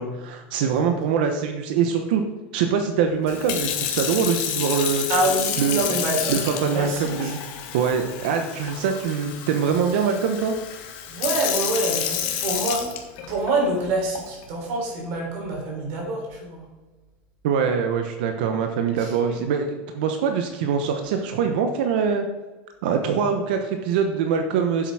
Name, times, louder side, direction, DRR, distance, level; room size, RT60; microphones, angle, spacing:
voice 1, 0.0-2.2 2.5-5.1 5.6-5.8 6.3-7.4 7.7-10.5 17.4-22.3 22.8-24.9, right 6 dB, 70° right, 5 dB, 1.0 m, -23 dB
Sink (filling or washing) / Fill (with liquid), 3.3-13.5 14.1-14.4, left 9 dB, 50° left, 1.5 m, -29 dB
voice 2, 5.1-7.4 11.1-12.9 13.3-16.7 19.0-19.4, right 2 dB, 50° right, -1 dB, 3.9 m, -26 dB
10.5 x 7.8 x 4.9 m, 1.2 s
supercardioid pair, 175°, 5 cm